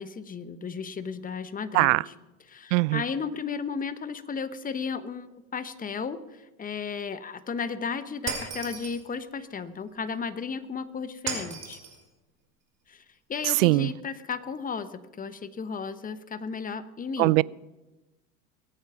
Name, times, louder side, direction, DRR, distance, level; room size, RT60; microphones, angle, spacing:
voice 1, 0.0-2.1 2.5-11.8 12.9-13.0 13.3-17.4, left 5 dB, 20° left, 1.1 m, -34 dB
voice 2, 1.7-2.0 2.7-3.0 13.5-13.9 17.2-17.4, right 23 dB, 60° right, 0.5 m, -21 dB
Shatter, 8.3-9.0 11.3-12.0, right 6 dB, 35° right, 5.0 m, -34 dB
23.0 x 8.9 x 5.9 m
hypercardioid pair, 95°, 44 cm